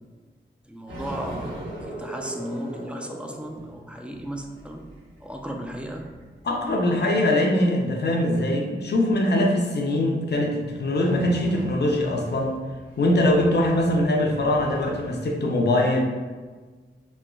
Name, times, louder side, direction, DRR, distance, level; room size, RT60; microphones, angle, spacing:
voice 1, 0.7-4.8 5.2-6.1, equal, 5° right, 2 dB, 0.4 m, -35 dB
sound 1, 0.9-7.2 10.7-15.2, right 1 dB, 75° right, 1.3 m, -40 dB
voice 2, 6.4-12.6 13.0-16.0, left 1 dB, 55° left, 1 dB, 0.5 m, -22 dB
3.1 x 2.1 x 2.3 m, 1.4 s
cardioid pair, 45°, 20 cm